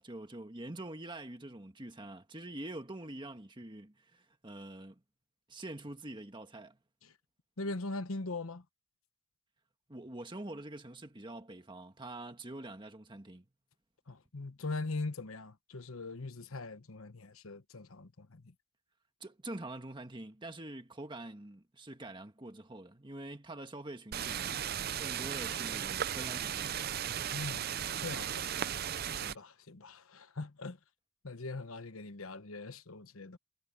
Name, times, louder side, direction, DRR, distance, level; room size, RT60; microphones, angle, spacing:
voice 1, 0.0-5.0 5.5-6.8 9.9-13.4 19.2-24.5 25.0-26.9, right 1 dB, 20° right, 1.5 m, -45 dB
voice 2, 7.6-8.6 14.1-18.4 27.3-28.5 29.1-30.8 31.2-33.4, left 3 dB, 80° left, 1.1 m, -41 dB
sound 1, 24.1-29.3, right 9 dB, 45° right, 0.5 m, -36 dB
head